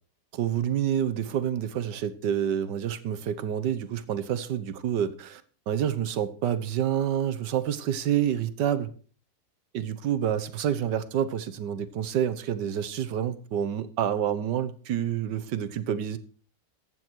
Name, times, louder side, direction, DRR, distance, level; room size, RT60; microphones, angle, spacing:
voice 1, 0.3-5.4 5.7-8.9 9.7-16.2, right 9 dB, 90° right, 1.6 m, -28 dB
14.5 x 9.0 x 4.5 m
omnidirectional pair, 1.8 m